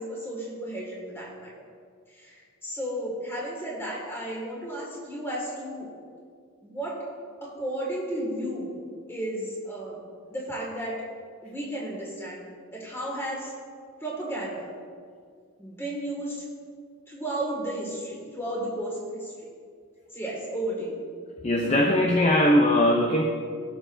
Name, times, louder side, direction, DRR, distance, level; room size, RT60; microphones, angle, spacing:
voice 1, 0.0-1.5 2.1-5.9 6.6-7.0 7.4-8.8 9.1-10.0 10.3-11.0 11.4-13.5 14.0-14.7 15.6-16.4 17.1-19.5 20.1-21.0 21.9-22.0, right 1 dB, 10° left, -4 dB, 2.1 m, -33 dB
voice 2, 21.4-23.2, left 1 dB, 30° left, 0 dB, 0.6 m, -20 dB
18.5 x 6.7 x 2.7 m, 2.1 s
head